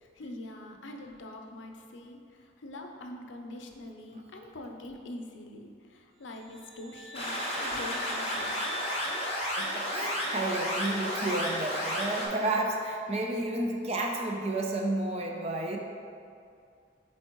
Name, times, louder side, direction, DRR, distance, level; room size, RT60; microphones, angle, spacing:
voice 1, 0.0-8.8, left 1 dB, 80° left, 3 dB, 0.6 m, -44 dB
sound 1, 6.3-10.3, right 1 dB, 85° right, 0.6 m, -45 dB
sound 2, 7.1-12.3, equal, 30° left, 1.2 m, -32 dB
voice 2, 9.6-15.8, right 2 dB, 35° right, 1 dB, 0.6 m, -31 dB
7.8 x 4.2 x 3.1 m, 2.4 s
head